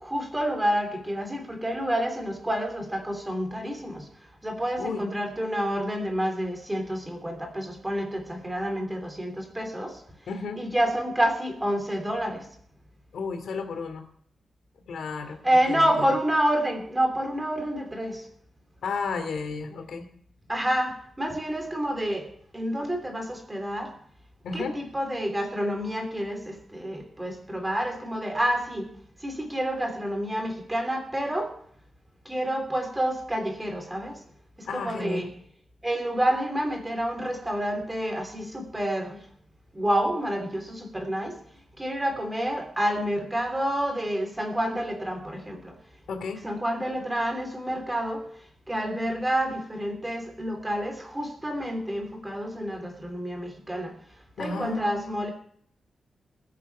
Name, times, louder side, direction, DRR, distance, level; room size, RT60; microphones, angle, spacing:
voice 1, 0.0-4.1 4.4-10.0 10.6-12.5 15.4-18.3 20.5-22.3 22.5-23.9 24.5-28.9 29.2-31.5 32.2-34.2 34.6-35.3 35.8-39.2 39.7-41.4 41.8-45.7 46.4-48.3 48.7-53.9 54.4-55.3, equal, 10° right, 4 dB, 3.1 m, -28 dB
voice 2, 10.3-10.6 13.1-14.1 14.9-16.1 18.8-20.1 24.4-24.8 27.3-27.4 34.7-35.3 46.1-46.5 54.4-55.1, left 4 dB, 85° left, 6 dB, 2.7 m, -33 dB
20.5 x 8.4 x 5.6 m, 0.62 s
wide cardioid pair, 150°, 0 cm